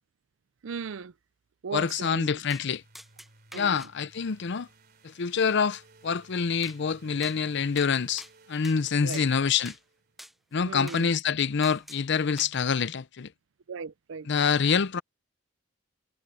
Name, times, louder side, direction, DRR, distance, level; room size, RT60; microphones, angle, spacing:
voice 1, 0.6-1.1 1.6-2.4 3.5-3.9 9.0-9.3 10.6-11.1 13.7-14.3, right 5 dB, 70° right, 0.5 m, -37 dB
voice 2, 1.7-2.8 3.5-4.7 5.0-8.2 8.5-9.7 10.5-13.3 14.3-15.0, left 6 dB, 60° left, 0.6 m, -26 dB
sound 1, 1.9-10.3, right 3 dB, 50° right, 3.2 m, -58 dB
sound 2, 2.5-2.7 3.0-3.9 6.6-6.8 7.2-7.4 7.8-8.8 9.1-9.3 9.7-9.8 10.2-10.3 10.9-11.1 11.6-12.0 12.4-12.7, equal, ahead, 0.7 m, -46 dB
head